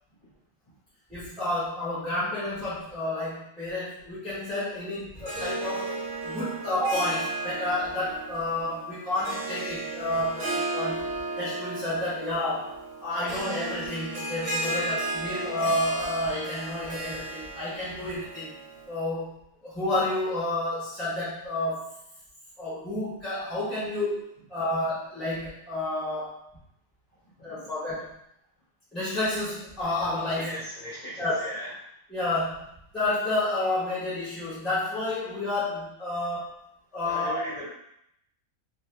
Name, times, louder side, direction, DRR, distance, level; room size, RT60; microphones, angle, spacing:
voice 1, 1.1-11.0 11.3-12.7 13.0-18.5 18.9-19.4 19.6-22.0 22.6-26.4 27.4-28.1 28.9-30.6 31.2-31.4 32.1-32.6 32.9-36.7 36.9-37.4, left 1 dB, ahead, -11 dB, 1.0 m, -30 dB
Harp, 5.2-18.9, right 2 dB, 65° right, 1.0 m, -34 dB
voice 2, 27.4-27.7 30.4-31.7 37.1-37.7, left 1 dB, 35° left, -8 dB, 0.7 m, -38 dB
2.7 x 2.4 x 3.3 m, 0.76 s
omnidirectional pair, 1.4 m